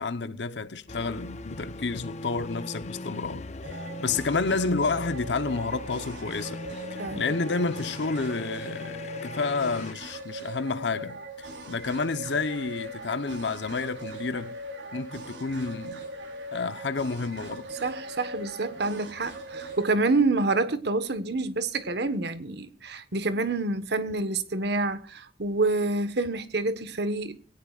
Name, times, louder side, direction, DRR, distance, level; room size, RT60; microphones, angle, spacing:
voice 1, 0.0-3.5 4.0-6.6 7.1-14.6 14.9-16.0 16.5-17.7, left 4 dB, 75° left, 1.0 m, -30 dB
sound 1, 0.9-9.9, left 2 dB, 40° left, 0.8 m, -40 dB
sound 2, 3.6-19.9, right 1 dB, 85° right, 4.1 m, -40 dB
voice 2, 17.8-27.4, right 3 dB, 65° right, 1.4 m, -27 dB
22.0 x 18.0 x 2.5 m
head